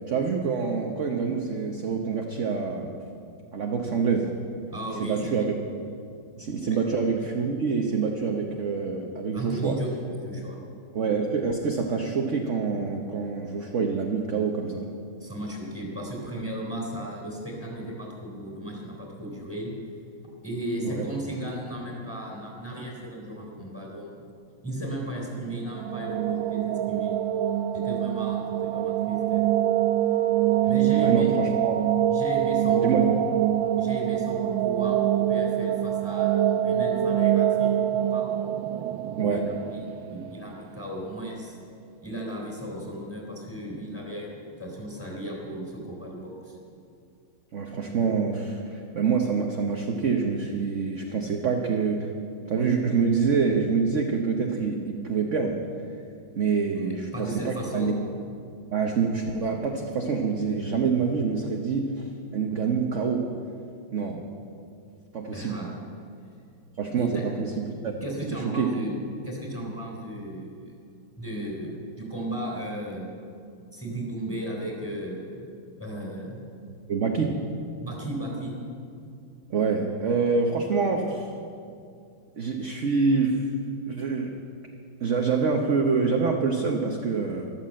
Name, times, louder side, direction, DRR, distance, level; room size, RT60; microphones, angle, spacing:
voice 1, 0.1-2.9 3.5-4.3 4.9-5.5 6.4-9.8 10.9-14.9 20.8-21.1 31.0-31.8 32.8-33.2 39.2-39.5 47.5-52.1 52.5-55.6 56.4-57.9 58.7-63.3 63.9-64.2 65.1-65.6 66.8-67.9 68.3-68.8 76.9-77.5 79.5-81.3 82.4-83.5 83.9-84.4 85.0-87.5, right 5 dB, 50° right, 2 dB, 1.0 m, -26 dB
voice 2, 4.7-5.5 6.7-6.8 9.3-9.9 10.2-10.6 15.2-19.7 20.4-24.3 24.6-27.1 27.7-29.5 30.7-31.3 32.1-33.2 33.8-38.3 39.2-39.4 40.0-41.6 42.0-44.3 44.6-46.6 56.7-57.9 65.3-65.7 66.9-67.2 68.0-68.9 69.2-70.7 71.2-73.1 73.7-75.5 75.8-76.4 77.8-78.6, right 1 dB, 5° left, -2 dB, 3.5 m, -35 dB
sound 1, 25.5-40.5, right 11 dB, 75° right, 1.3 m, -25 dB
13.5 x 12.5 x 7.5 m, 2.4 s
omnidirectional pair, 2.3 m